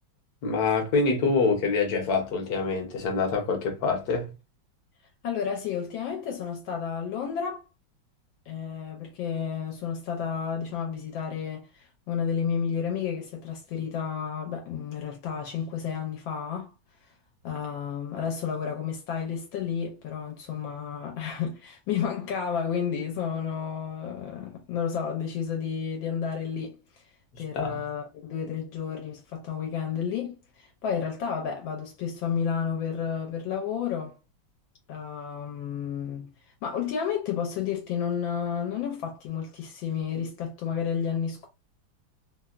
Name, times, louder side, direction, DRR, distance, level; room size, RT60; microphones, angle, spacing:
voice 1, 0.4-4.3 27.3-27.8, left 4 dB, 60° left, 1.2 m, -26 dB
voice 2, 5.2-7.6 8.5-16.7 17.4-26.8 27.4-34.2 34.9-36.3 36.6-41.5, left 7 dB, 80° left, 1.4 m, -31 dB
3.4 x 2.1 x 2.3 m
omnidirectional pair, 2.1 m